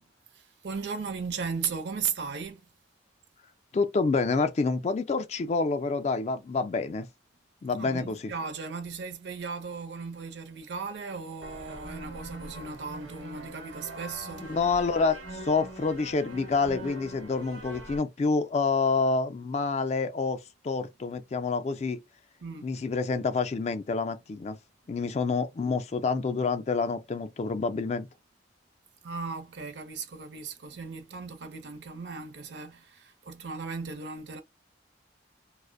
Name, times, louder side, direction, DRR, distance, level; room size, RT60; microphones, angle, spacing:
voice 1, 0.3-2.6 7.8-14.5 22.4-22.7 29.0-34.4, right 5 dB, 65° right, 0.5 m, -36 dB
voice 2, 3.7-7.1 7.6-8.3 14.4-22.0 22.6-24.6 24.9-28.1, left 4 dB, 35° left, 0.3 m, -28 dB
sound 1, 11.4-18.0, right 1 dB, 85° right, 1.0 m, -43 dB
2.5 x 2.0 x 2.4 m
head